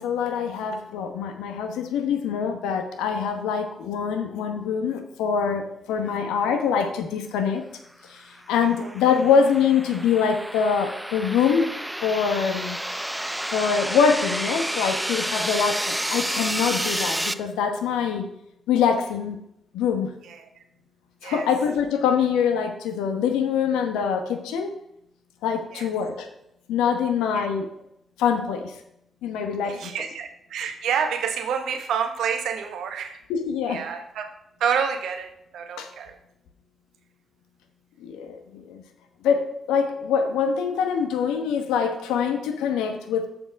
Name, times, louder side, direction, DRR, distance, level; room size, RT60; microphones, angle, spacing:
voice 1, 0.0-7.6 8.1-8.2 8.5-11.7 12.0-12.8 13.5-18.3 18.7-19.4 19.7-20.1 21.2-24.7 25.4-26.3 26.7-27.7 28.2-28.7 29.2-29.9 33.3-33.8 35.8-35.9 38.0-38.8 39.2-39.4 39.7-43.3, left 6 dB, 80° left, 6 dB, 1.0 m, -24 dB
sound 1, 8.4-17.3, right 1 dB, 5° right, 0.5 m, -30 dB
voice 2, 8.6-8.9 20.2-20.5 21.2-21.5 25.7-25.9 27.3-27.5 29.6-33.2 33.7-34.3 34.6-36.1, right 7 dB, 75° right, 6 dB, 1.0 m, -28 dB
7.1 x 6.8 x 5.1 m, 0.79 s
hypercardioid pair, 40°, 0 cm